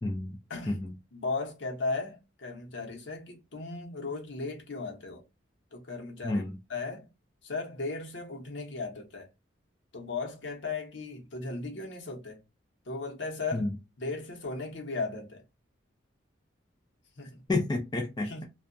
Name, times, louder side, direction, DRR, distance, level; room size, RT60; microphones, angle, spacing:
voice 1, 0.0-0.4 0.7-0.9 6.2-6.5 13.5-13.7 17.5-18.4, left 2 dB, 20° left, 0.4 m, -30 dB
voice 2, 1.1-5.2 5.7-6.4 6.7-7.1 7.4-9.3 9.9-12.4 12.9-13.7 14.0-15.4 17.2-17.4 18.2-18.4, left 3 dB, 70° left, 0.8 m, -36 dB
2.7 x 2.2 x 2.5 m
head